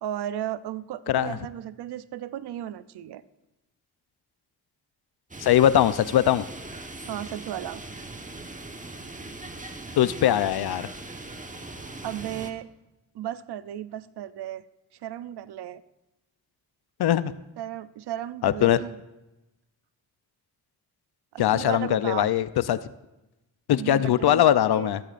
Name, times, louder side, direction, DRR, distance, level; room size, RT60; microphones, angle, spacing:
voice 1, 0.0-3.2 7.1-7.8 12.0-12.7 13.1-14.7 15.0-15.8 17.6-19.0 21.3-22.3 23.8-24.9, right 11 dB, 75° right, 15 dB, 0.6 m, -35 dB
voice 2, 1.1-1.4 5.4-6.4 10.0-10.9 17.0-17.3 18.4-18.8 21.4-22.8 23.7-25.0, left 11 dB, 70° left, 15 dB, 0.6 m, -21 dB
sound 1, 5.3-12.5, right 2 dB, 20° right, 1.2 m, -40 dB
25.5 x 8.6 x 2.5 m, 0.97 s
supercardioid pair, 45°, 40 cm